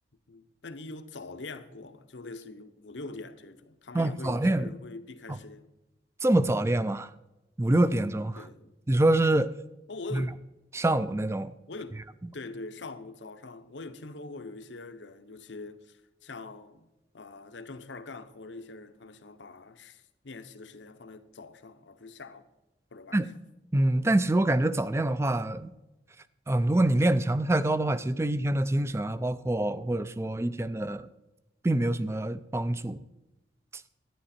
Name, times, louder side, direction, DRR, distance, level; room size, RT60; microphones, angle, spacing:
voice 1, 0.3-5.7 8.4-8.7 9.9-10.4 11.7-12.0 12.3-16.9 17.1-22.5 22.9-23.2, left 3 dB, 80° left, 0.9 m, -43 dB
voice 2, 3.9-4.7 6.2-7.1 7.6-8.4 8.9-9.5 10.1-10.3 10.7-11.5 23.1-23.3 23.7-25.7 26.5-31.1 31.6-33.0 33.7-33.8, right 1 dB, 15° right, 0.4 m, -25 dB
12.5 x 9.9 x 4.3 m
head